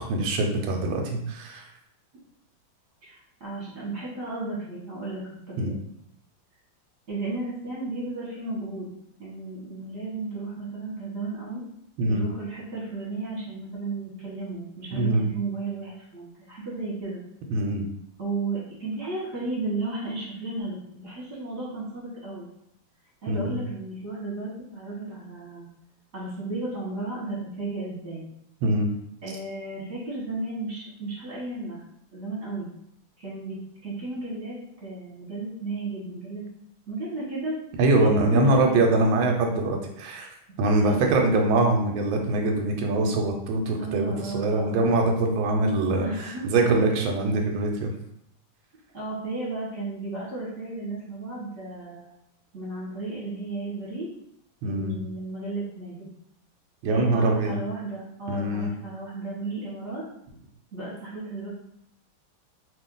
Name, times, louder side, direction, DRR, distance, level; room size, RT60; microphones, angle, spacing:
voice 1, 0.0-1.7 5.6-5.7 12.0-12.2 14.9-15.3 17.5-17.8 23.3-23.6 28.6-28.9 37.8-40.3 40.6-47.9 54.6-54.9 56.8-57.6 58.3-58.7, right 2 dB, 90° right, 2 dB, 1.4 m, -23 dB
voice 2, 3.0-5.8 7.1-8.9 9.2-11.6 12.0-17.2 18.2-22.5 23.2-25.7 26.1-28.3 29.2-31.8 32.1-32.7 33.2-36.4 36.9-37.6 37.9-38.8 40.8-41.2 43.8-44.9 46.0-46.5 48.9-52.1 52.5-54.1 54.6-56.1 56.9-60.0 60.7-61.5, right 2 dB, 40° right, -7 dB, 1.1 m, -34 dB
2.9 x 2.5 x 3.7 m, 0.74 s
omnidirectional pair, 2.1 m